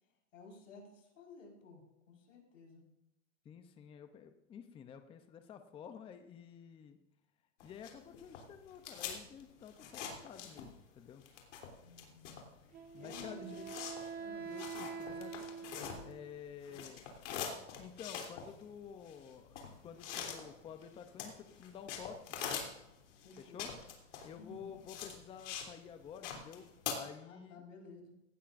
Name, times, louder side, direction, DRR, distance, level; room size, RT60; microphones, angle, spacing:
voice 1, 0.3-2.9 11.8-13.7 14.1-14.5 14.8-15.2 16.7-16.8 23.2-23.7 24.3-24.7 27.2-28.1, left 3 dB, 85° left, 0 dB, 4.8 m, -54 dB
voice 2, 3.4-7.0 7.6-11.2 12.9-13.6 14.5-17.1 17.8-22.4 23.4-23.7 24.2-27.6, left 8 dB, 15° left, 8 dB, 0.6 m, -51 dB
sound 1, 7.6-10.9 11.2-16.3 16.6-25.7 26.0-26.9, left 7 dB, 70° left, 3.2 m, -44 dB
Wind instrument woodwind instrument, 12.7-16.3, right 6 dB, 25° right, 1.7 m, -45 dB
17.5 x 13.5 x 2.6 m, 0.87 s
hypercardioid pair, 135°, 38 cm